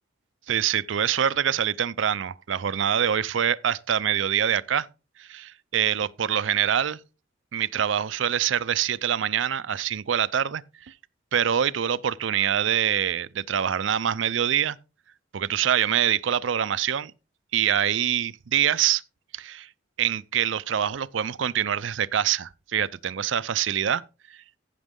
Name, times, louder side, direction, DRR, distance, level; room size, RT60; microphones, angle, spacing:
voice 1, 0.5-4.9 5.2-7.0 7.5-10.9 11.3-14.8 15.3-17.1 17.5-19.0 19.3-19.7 20.0-24.0, right 9 dB, 80° right, 0.5 m, -25 dB
15.0 x 6.1 x 3.7 m
head